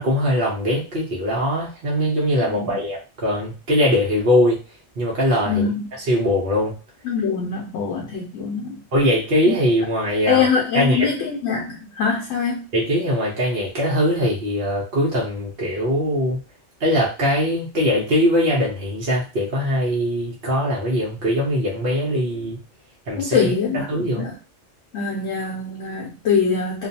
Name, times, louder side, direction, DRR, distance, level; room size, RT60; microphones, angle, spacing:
voice 1, 0.0-4.6 5.0-5.6 6.1-6.7 8.9-10.5 10.7-11.1 12.7-16.4 16.8-22.6 23.1-24.2, equal, 50° right, -4 dB, 0.9 m, -21 dB
voice 2, 2.5-2.8 5.5-5.8 7.0-8.9 9.5-9.6 10.3-12.7 23.2-24.4 24.9-26.9, left 6 dB, 80° left, -2 dB, 0.9 m, -23 dB
2.5 x 2.3 x 2.7 m, 0.33 s
omnidirectional pair, 1.3 m